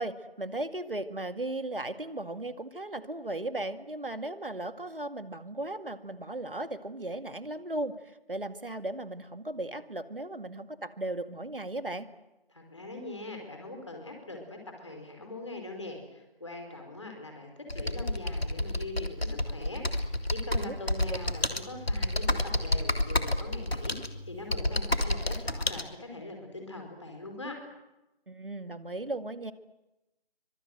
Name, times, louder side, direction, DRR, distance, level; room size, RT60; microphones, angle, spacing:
voice 1, 0.0-8.0 8.3-12.1 20.6-20.7 28.3-29.5, right 2 dB, 65° right, 10 dB, 2.1 m, -36 dB
voice 2, 12.5-27.6, left 2 dB, 30° left, 3 dB, 5.0 m, -42 dB
Computer keyboard, 17.7-25.8, left 1 dB, 90° left, 3.2 m, -30 dB
29.0 x 25.0 x 8.0 m, 0.98 s
figure-of-eight pair, 175°, 30 cm